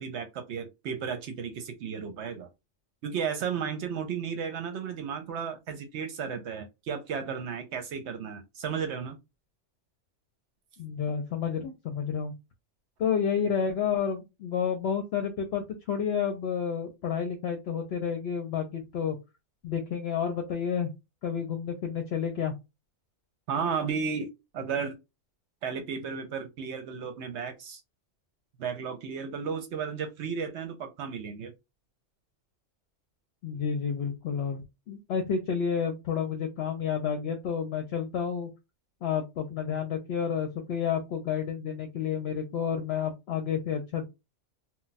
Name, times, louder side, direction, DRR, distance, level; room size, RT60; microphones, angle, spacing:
voice 1, 0.0-2.5 3.0-9.2 23.5-24.3 24.5-25.0 25.6-27.8 28.6-31.5, right 6 dB, 75° right, 0.9 m, -34 dB
voice 2, 10.8-12.3 13.0-19.2 19.6-20.9 21.2-22.5 33.4-38.5 39.0-44.0, left 7 dB, 65° left, 0.8 m, -30 dB
2.2 x 2.2 x 3.9 m
omnidirectional pair, 1.2 m